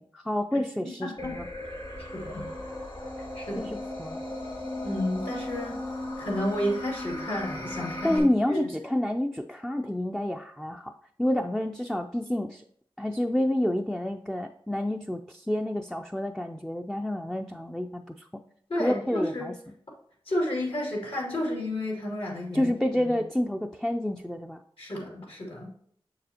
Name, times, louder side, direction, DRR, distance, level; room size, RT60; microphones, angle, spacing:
voice 1, 0.0-1.5 3.6-4.2 8.0-10.9 11.2-12.6 13.0-18.3 18.8-19.5 22.5-24.6, left 1 dB, 5° left, 3 dB, 0.4 m, -29 dB
voice 2, 1.0-1.4 2.0-2.5 3.2-3.7 4.8-5.8 6.2-8.2 8.5-8.6 18.7-19.5 20.3-23.2 24.8-25.7, left 1 dB, 75° left, -2 dB, 2.5 m, -31 dB
sound 1, 1.2-8.2, left 1 dB, 60° left, 2.2 m, -36 dB
6.9 x 6.6 x 2.8 m, 0.63 s
wide cardioid pair, 70°, 10 cm